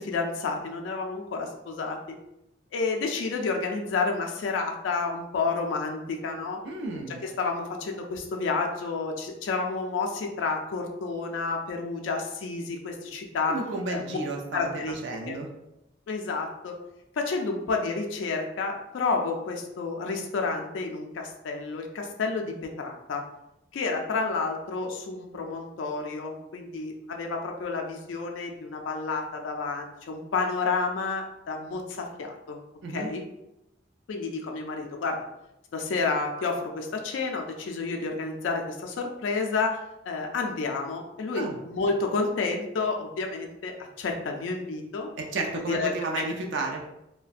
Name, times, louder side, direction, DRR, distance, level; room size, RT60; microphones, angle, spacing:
voice 1, 0.0-2.2 2.7-6.6 6.9-13.6 13.9-14.2 14.5-15.0 15.3-15.4 16.1-16.8 17.2-23.2 23.7-32.6 32.9-33.2 34.1-35.2 35.7-39.8 40.1-45.1 45.5-46.2, left 4 dB, 80° left, 2 dB, 0.3 m, -30 dB
voice 2, 6.6-7.2 13.5-14.7 15.0-15.5 32.8-33.1 41.4-41.6 45.2-46.8, right 3 dB, 70° right, 1 dB, 0.4 m, -32 dB
2.4 x 2.1 x 2.4 m, 0.88 s
head